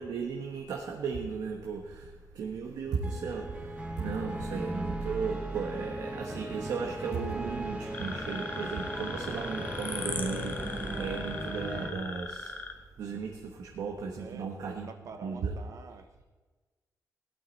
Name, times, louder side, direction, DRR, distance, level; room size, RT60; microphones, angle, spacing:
voice 1, 0.0-12.6 13.0-14.9 15.2-15.5, right 5 dB, 80° right, 1 dB, 1.4 m, -35 dB
sound 1, 2.8-11.9, right 1 dB, 20° right, 1.6 m, -38 dB
sound 2, 7.9-12.7, left 3 dB, 30° left, 1.1 m, -39 dB
voice 2, 14.2-16.3, right 5 dB, 55° right, 8 dB, 0.9 m, -47 dB
17.0 x 12.0 x 4.2 m, 1.3 s
wide cardioid pair, 160°, 6 cm